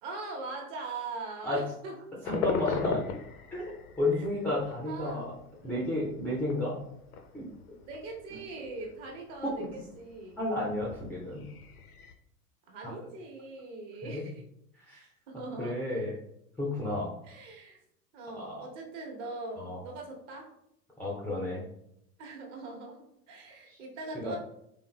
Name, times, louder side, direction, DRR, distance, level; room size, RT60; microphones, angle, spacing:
voice 1, 0.0-2.0 4.9-5.2 5.6-5.9 7.9-10.4 12.7-14.4 15.3-15.8 17.2-17.8 18.1-20.5 22.2-24.4, right 3 dB, 45° right, 1 dB, 1.0 m, -41 dB
sound 1, 2.2-12.1, left 5 dB, 70° left, 0.6 m, -40 dB
voice 2, 2.2-3.0 3.5-5.3 5.6-6.8 7.3-7.5 8.3-8.4 9.6-9.7 10.4-11.4 12.8-13.0 14.0-14.3 14.7-15.1 15.6-16.2 16.6-17.2 18.4-18.6 19.6-19.8 21.0-21.6 23.7-23.8 24.1-24.4, left 1 dB, 5° left, -6 dB, 0.4 m, -32 dB
3.9 x 3.3 x 2.2 m, 0.76 s
figure-of-eight pair, 85°, 47 cm